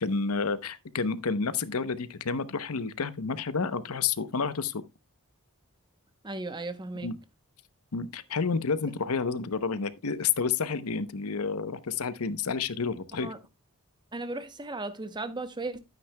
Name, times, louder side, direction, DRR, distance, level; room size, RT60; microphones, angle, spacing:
voice 1, 0.0-4.8 7.0-7.2 7.9-13.3, left 5 dB, 75° left, 0.8 m, -30 dB
voice 2, 6.2-7.1 13.2-13.4 14.1-15.8, right 2 dB, 20° right, 0.8 m, -36 dB
11.5 x 9.3 x 2.2 m
head